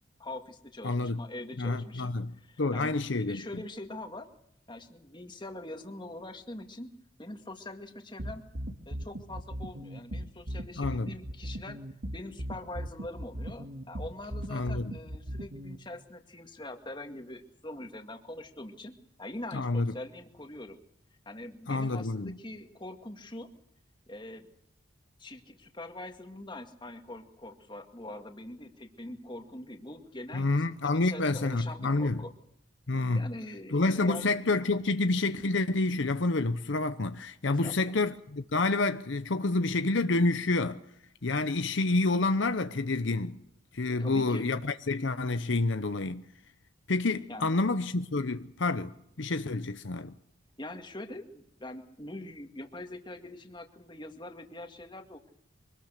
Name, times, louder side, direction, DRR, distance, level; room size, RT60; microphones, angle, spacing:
voice 1, 0.2-4.3 4.7-6.9 7.2-8.4 8.9-11.8 12.1-20.8 21.3-23.5 24.1-24.5 25.2-30.5 30.8-32.3 33.1-34.3 37.5-37.9 44.0-44.4 47.3-47.6 50.6-55.3, left 1 dB, 20° left, 2.1 m, -43 dB
voice 2, 0.8-1.2 1.6-2.3 2.6-3.4 10.8-11.1 14.5-14.9 19.5-19.9 21.7-22.4 30.3-32.2 32.9-33.3 33.7-40.8 41.2-43.4 43.7-46.2 46.9-48.9 49.2-50.1, left 3 dB, 60° left, 0.8 m, -28 dB
sound 1, 8.2-15.8, right 1 dB, 65° right, 1.9 m, -38 dB
25.0 x 19.5 x 6.7 m
head